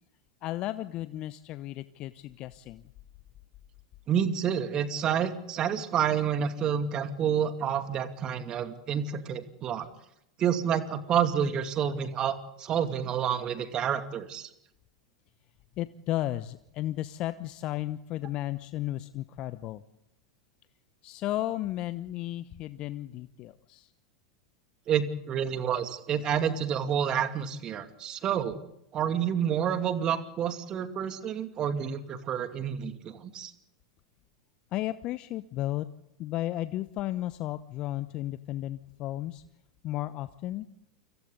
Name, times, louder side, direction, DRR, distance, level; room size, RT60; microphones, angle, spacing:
voice 1, 0.4-2.8 15.8-19.8 21.0-23.9 34.7-35.9 36.2-39.4 39.8-40.7, left 14 dB, 45° left, 13 dB, 1.0 m, -34 dB
voice 2, 4.1-9.9 10.4-14.5 24.9-28.6 28.9-33.5, right 8 dB, 35° right, 8 dB, 2.6 m, -29 dB
29.5 x 25.5 x 4.0 m, 0.80 s
figure-of-eight pair, 90°, 2 cm